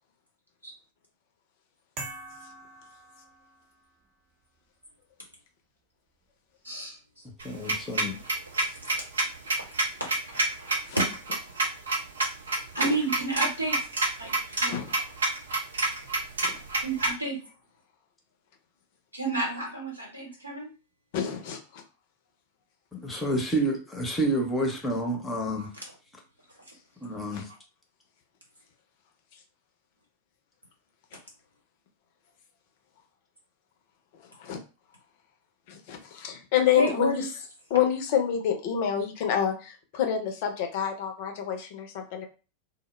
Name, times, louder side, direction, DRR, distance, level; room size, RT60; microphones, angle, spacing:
sound 1, 2.0-3.9, right 2 dB, 30° right, 0.6 m, -43 dB
voice 1, 6.6-7.2 8.6-8.9 10.0-11.0 12.7-13.8 14.2-14.3 14.6-14.8 16.8-17.4 19.1-20.7 25.6-25.8 36.7-37.3, right 2 dB, 85° right, -2 dB, 1.0 m, -31 dB
voice 2, 7.4-8.2 22.9-25.7 27.0-27.5, right 1 dB, 10° left, 0 dB, 0.7 m, -29 dB
sound 2, 7.4-17.1, right 2 dB, 70° right, 0.5 m, -27 dB
voice 3, 14.7-15.0 16.4-16.6 21.1-21.8 27.3-27.4 34.4-34.6 35.7-37.2 37.7-42.2, left 9 dB, 50° left, 4 dB, 0.5 m, -28 dB
2.1 x 2.0 x 3.0 m, 0.33 s
figure-of-eight pair, 90°, 0 cm